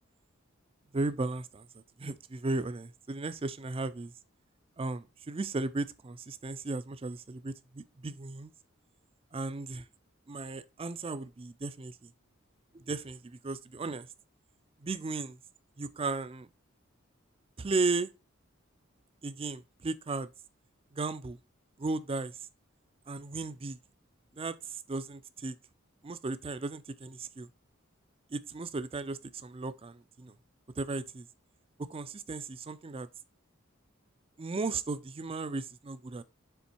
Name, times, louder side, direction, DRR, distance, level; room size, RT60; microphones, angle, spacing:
voice 1, 0.9-1.7 2.0-4.1 4.8-8.5 9.3-9.8 10.3-12.1 12.7-14.1 14.8-15.4 15.8-16.5 17.6-18.1 19.2-20.3 20.9-21.4 21.8-22.4 23.1-23.8 24.4-25.6 26.0-27.5 28.3-30.3 30.8-31.3 31.8-33.1 34.4-36.2, right 3 dB, 25° right, 0.4 m, -35 dB
7.0 x 3.8 x 4.4 m
head